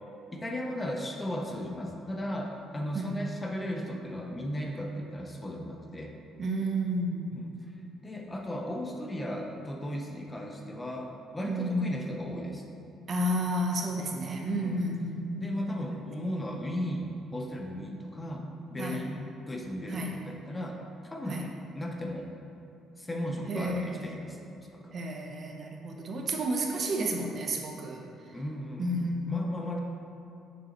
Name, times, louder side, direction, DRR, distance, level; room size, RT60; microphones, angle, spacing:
voice 1, 0.3-6.1 7.3-7.4 8.0-12.6 14.6-14.9 15.4-19.2 19.5-21.4 21.7-22.3 23.0-24.9 28.3-29.8, equal, 15° left, 1 dB, 0.6 m, -36 dB
voice 2, 6.4-7.4 11.4-11.9 13.1-15.5 15.9-16.0 18.8-19.0 19.9-20.2 21.3-21.4 23.5-24.2 24.9-28.0 28.8-29.3, right 1 dB, 45° right, 1 dB, 0.8 m, -31 dB
6.8 x 6.6 x 3.0 m, 2.8 s
cardioid pair, 120°, 0 cm